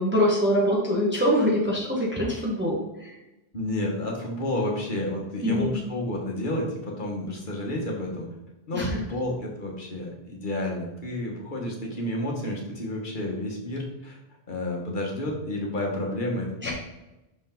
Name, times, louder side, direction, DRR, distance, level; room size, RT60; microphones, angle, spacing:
voice 1, 0.0-3.2 5.4-5.8 8.7-8.9 16.6-16.7, equal, 10° right, -4 dB, 1.4 m, -24 dB
voice 2, 3.5-8.3 8.7-14.2 14.5-16.7, left 1 dB, 50° left, -1 dB, 1.6 m, -30 dB
6.0 x 5.2 x 3.9 m, 1.0 s
omnidirectional pair, 1.1 m